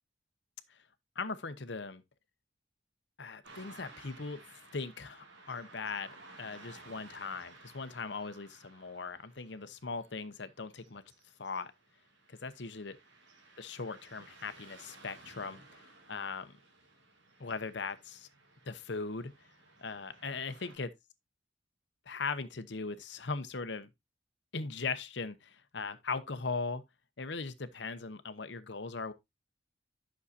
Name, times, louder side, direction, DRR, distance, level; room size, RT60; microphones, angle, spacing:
voice 1, 1.2-2.0 3.2-4.4 4.7-11.0 11.4-11.7 12.3-13.0 13.6-15.8 16.1-16.6 17.4-18.3 18.7-19.3 19.8-20.9 22.1-23.9 24.5-26.8 27.2-29.1, left 4 dB, 70° left, 0.9 m, -39 dB
Car passing by / Traffic noise roadway noise, 3.4-20.8, right 3 dB, 75° right, 2.5 m, -57 dB
11.0 x 6.4 x 2.7 m
head